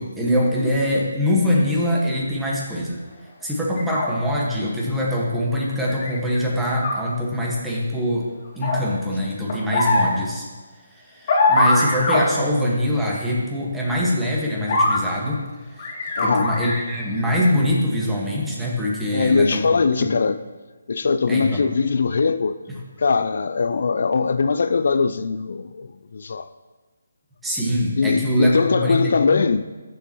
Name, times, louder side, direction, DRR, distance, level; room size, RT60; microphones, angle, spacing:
voice 1, 0.0-3.0 3.4-8.3 8.5-10.5 10.9-15.4 15.7-19.6 20.0-20.1 21.3-21.7 27.4-29.5, equal, 5° right, 1.6 m, -23 dB
sound 1, 3.8-4.1 5.9-6.4 6.7-6.9 8.6-8.8 9.5-10.1 11.3-12.2 14.7-15.0 15.8-16.9 17.4-17.6, left 2 dB, 40° left, 2.2 m, -21 dB
voice 2, 16.2-16.5 19.1-20.4 20.9-22.6 23.0-26.5 28.0-29.6, left 4 dB, 65° left, 0.3 m, -21 dB
13.5 x 7.1 x 3.0 m
hypercardioid pair, 160°, 0 cm